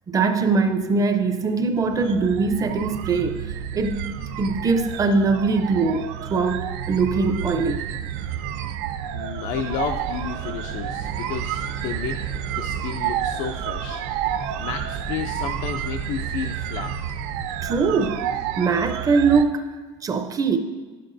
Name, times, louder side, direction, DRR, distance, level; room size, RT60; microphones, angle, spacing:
voice 1, 0.1-3.4 3.7-7.8 17.6-18.2 18.6-19.6 20.0-20.6, right 4 dB, 25° right, 7 dB, 0.5 m, -22 dB
sound 1, 1.7-19.5, right 9 dB, 90° right, 0.4 m, -30 dB
voice 2, 9.1-12.2 12.5-14.0 14.6-16.9, left 8 dB, 70° left, 5 dB, 0.4 m, -32 dB
sound 2, 9.4-18.2, right 3 dB, 55° right, 0.9 m, -38 dB
10.0 x 6.7 x 2.6 m, 1.4 s
cardioid pair, 135°, 14 cm